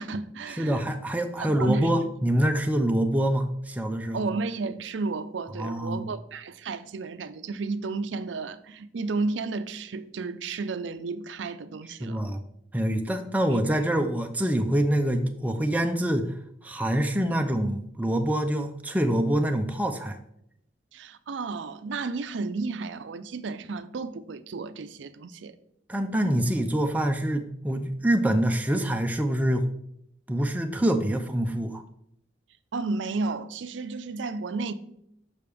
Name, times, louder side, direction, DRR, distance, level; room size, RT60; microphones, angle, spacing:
voice 1, 0.0-0.8 1.4-1.9 4.1-12.2 20.9-25.6 32.7-34.7, right 3 dB, 75° right, 0.5 m, -32 dB
voice 2, 0.6-4.2 5.6-6.1 12.0-12.4 12.7-16.3 16.6-20.2 25.9-29.6 30.3-31.8, right 1 dB, 10° right, 0.4 m, -25 dB
6.7 x 5.6 x 3.4 m
head